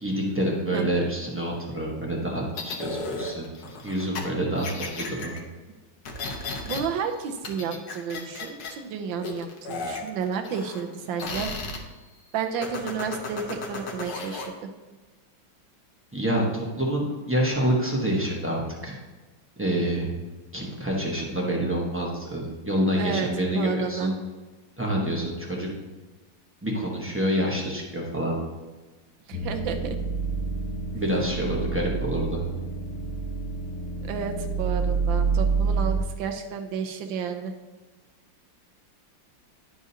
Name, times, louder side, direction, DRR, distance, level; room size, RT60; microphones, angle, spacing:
voice 1, 0.0-3.5 3.8-5.4 16.1-19.0 19.6-20.1 20.5-24.1 24.8-25.7 26.6-28.3 30.9-32.4, right 1 dB, 15° right, -3 dB, 0.5 m, -27 dB
sound 1, 2.6-4.2 4.6-5.4 6.1-6.8 7.1-8.8 9.2-10.9 11.2-11.8 12.6-14.5, left 3 dB, 60° left, 1.5 m, -34 dB
voice 2, 6.7-11.5 12.3-14.7 22.9-23.3 23.5-24.1 29.3-30.0 34.1-37.5, right 6 dB, 75° right, 6 dB, 1.3 m, -31 dB
sound 2, 29.3-36.0, right 4 dB, 90° left, 1.7 m, -28 dB
11.0 x 4.9 x 2.8 m, 1.2 s
omnidirectional pair, 2.3 m